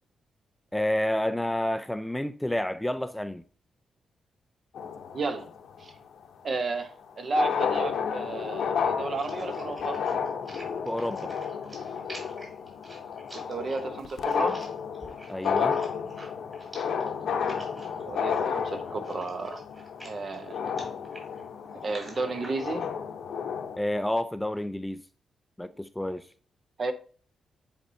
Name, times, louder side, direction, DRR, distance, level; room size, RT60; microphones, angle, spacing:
voice 1, 0.7-3.4 10.9-11.3 15.3-15.8 23.8-25.0 25.6-26.3, left 1 dB, 5° left, 0.4 m, -29 dB
sound 1, 4.8-5.8 7.0-7.1 7.3-23.8, left 6 dB, 75° left, 0.8 m, -32 dB
voice 2, 5.1-5.5 5.8-5.9 6.4-10.0 13.3-14.6 18.0-19.6 20.0-20.6 21.8-22.9 26.8-26.9, right 3 dB, 45° right, 0.9 m, -32 dB
sound 2, 9.1-22.9, right 1 dB, 25° right, 3.5 m, -49 dB
9.0 x 4.4 x 2.7 m
cardioid pair, 95°, 0 cm